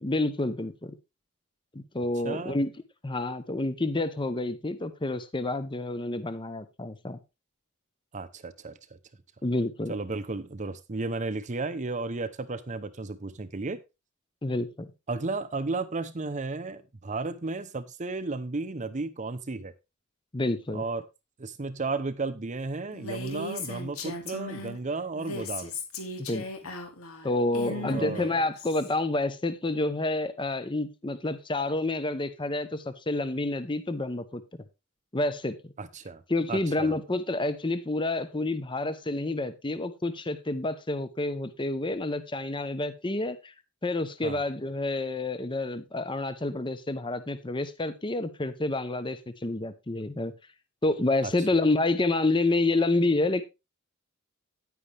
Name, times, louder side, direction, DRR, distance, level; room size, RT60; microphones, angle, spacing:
voice 1, 0.0-0.9 1.7-2.7 3.0-7.2 9.4-9.9 14.4-14.9 20.3-20.8 26.2-26.4 27.2-34.4 35.1-35.6 36.3-43.5 43.8-50.3 50.8-53.4, left 2 dB, 20° left, 0.8 m, -28 dB
voice 2, 2.2-2.6 8.1-8.8 9.9-13.8 15.1-19.7 20.7-21.0 21.4-25.7 27.7-28.3 35.8-36.2 36.5-36.9 44.2-44.4 51.2-51.6, right 3 dB, 35° right, 0.7 m, -33 dB
Female speech woman speaking, 22.9-24.8 25.1-28.9, left 2 dB, 80° left, 2.4 m, -37 dB
10.0 x 9.5 x 3.4 m
head